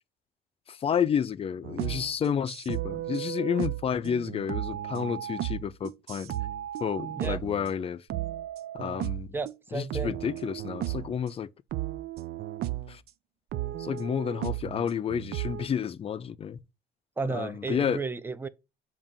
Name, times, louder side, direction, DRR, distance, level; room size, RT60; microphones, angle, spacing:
voice 1, 0.7-6.3 6.8-8.1 8.7-9.3 9.7-11.5 12.9-13.0 13.8-16.6 17.3-18.0, left 7 dB, 35° left, 0.5 m, -30 dB
sound 1, 1.6-7.7 8.1-9.6 9.9-11.2 11.7-13.0 13.5-15.7, right 14 dB, 65° right, 0.5 m, -34 dB
voice 2, 9.3-10.2 17.2-18.5, right 4 dB, 15° right, 0.5 m, -33 dB
7.2 x 2.9 x 5.2 m
cardioid pair, 110°, 17 cm